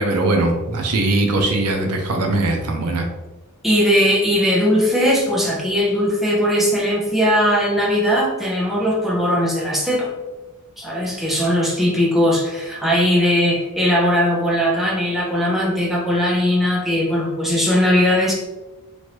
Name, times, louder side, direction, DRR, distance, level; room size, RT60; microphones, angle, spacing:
voice 1, 0.0-3.1, right 2 dB, 90° right, 3 dB, 0.6 m, -20 dB
voice 2, 3.6-10.1 10.8-18.3, equal, ahead, -4 dB, 0.6 m, -19 dB
3.0 x 2.6 x 3.0 m, 1.1 s
head